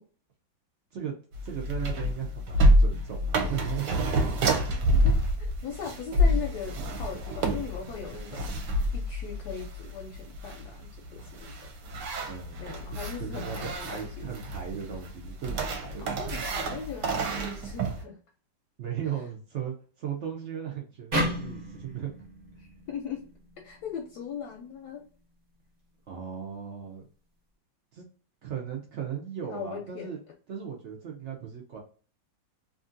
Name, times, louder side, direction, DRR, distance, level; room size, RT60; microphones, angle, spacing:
sound 1, 1.3-18.0, equal, 75° right, 1.2 m, -28 dB
voice 1, 1.4-4.1 12.3-12.7 13.2-16.4 18.8-22.1 26.1-27.1 27.9-28.0 28.4-30.2 30.5-31.8, right 8 dB, 90° right, 0 dB, 0.6 m, -37 dB
voice 2, 4.7-11.7 12.6-14.3 16.0-18.2 22.6-23.3 23.6-25.1 29.5-30.1, left 7 dB, 75° left, 2 dB, 1.0 m, -39 dB
sound 2, 21.1-24.3, equal, 40° right, 0.7 m, -34 dB
2.8 x 2.5 x 2.5 m, 0.40 s
omnidirectional pair, 2.0 m